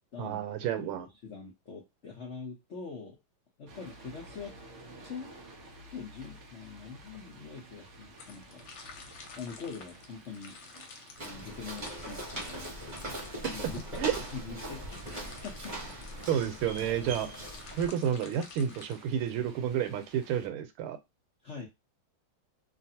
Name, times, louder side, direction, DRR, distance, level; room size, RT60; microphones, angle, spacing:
voice 1, 0.2-1.1 14.0-14.1 16.3-17.3 17.8-21.0, right 9 dB, 85° right, 8 dB, 1.5 m, -30 dB
voice 2, 0.8-3.2 3.6-4.6 5.0-5.3 5.9-8.6 9.4-10.6 11.2-12.7 13.2-13.8 14.3-16.0 21.4-21.7, left 5 dB, 90° left, -1 dB, 0.6 m, -44 dB
sound 1, 3.7-20.5, right 2 dB, 65° right, 0.7 m, -54 dB
sound 2, 8.2-19.5, left 5 dB, 70° left, 1.4 m, -51 dB
Walk footsteps, 11.2-17.9, right 1 dB, 35° right, 0.8 m, -40 dB
3.3 x 2.5 x 2.7 m, 0.21 s
omnidirectional pair, 2.4 m